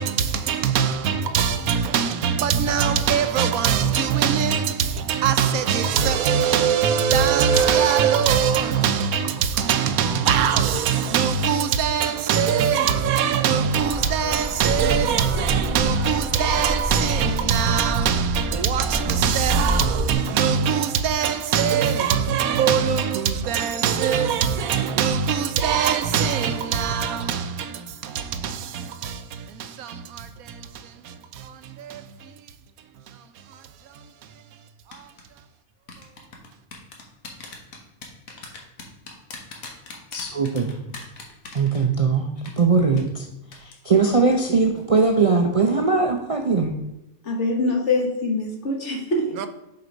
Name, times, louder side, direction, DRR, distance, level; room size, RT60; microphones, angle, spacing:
voice 1, 0.0-32.3 34.9-35.1 49.4-49.5, right 7 dB, 85° right, 1.1 m, -22 dB
sound 1, 7.5-11.0 11.5-11.6 12.1-12.5 13.1-13.2, left 3 dB, 30° left, 0.8 m, -39 dB
sound 2, 13.8-20.1, equal, 30° right, 0.7 m, -28 dB
sound 3, 34.9-35.2 35.9-42.2 42.5-42.6 43.0-43.1 43.5-43.8 44.1-44.4 44.7-44.8, left 4 dB, 70° left, 1.6 m, -39 dB
voice 2, 40.1-40.8 41.5-42.3 42.6-43.3 43.6-46.7, right 4 dB, 65° right, 0.3 m, -20 dB
voice 3, 47.2-49.4, left 2 dB, 55° left, 1.3 m, -24 dB
6.7 x 4.4 x 5.2 m
omnidirectional pair, 1.5 m